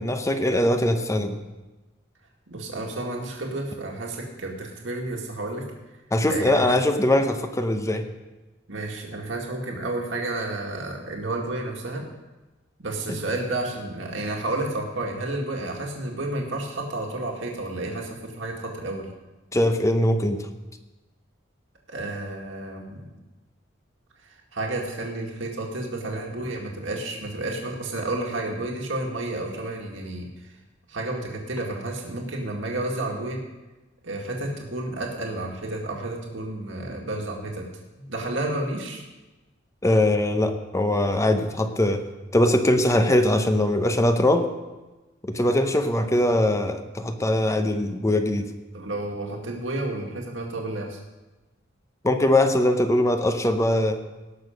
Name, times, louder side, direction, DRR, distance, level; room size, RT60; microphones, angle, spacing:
voice 1, 0.0-1.4 6.1-8.0 13.1-13.2 19.5-20.5 39.8-42.1 42.3-44.5 45.2-48.5 52.0-54.0, left 1 dB, 15° left, 7 dB, 0.8 m, -21 dB
voice 2, 2.5-5.7 6.3-6.8 8.7-12.0 12.8-19.1 21.9-23.1 24.5-30.5 30.9-33.4 34.0-37.6 38.0-39.0 48.7-51.0, right 2 dB, 75° right, 0 dB, 2.0 m, -31 dB
17.5 x 6.4 x 5.1 m, 1.1 s
head